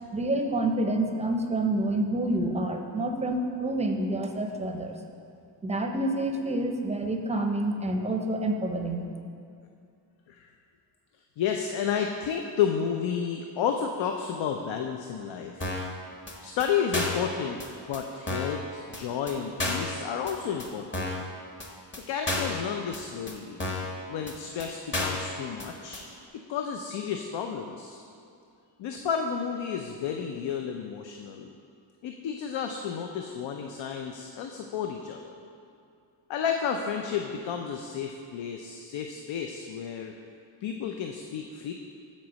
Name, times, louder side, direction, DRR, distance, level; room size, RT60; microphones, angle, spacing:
voice 1, 0.1-5.0 5.6-9.1, right 1 dB, 15° right, 3 dB, 0.5 m, -28 dB
voice 2, 11.4-15.7 16.4-17.6 17.9-21.1 22.1-23.8 24.1-26.0 26.5-28.0 28.8-31.5 32.0-35.4 36.3-40.1 40.6-41.7, left 7 dB, 85° left, 4 dB, 0.6 m, -31 dB
sound 1, 15.6-15.9 16.3-16.4 16.6-16.7 16.9-17.3 17.6-17.7 17.9-18.0 18.3-18.6 18.9-19.0 19.3-19.4 19.6-19.9 20.3-20.4 20.6-20.7 20.9-21.3 21.6-21.7 21.9-22.0 22.3-22.6 22.9-23.0 23.3-23.4 23.6-23.9 24.3-24.4 24.6-24.7 24.9-25.3 25.6-25.7 25.9-26.0, left 2 dB, 25° left, 0.9 m, -31 dB
7.6 x 4.2 x 6.2 m, 2.4 s
wide cardioid pair, 140°, 44 cm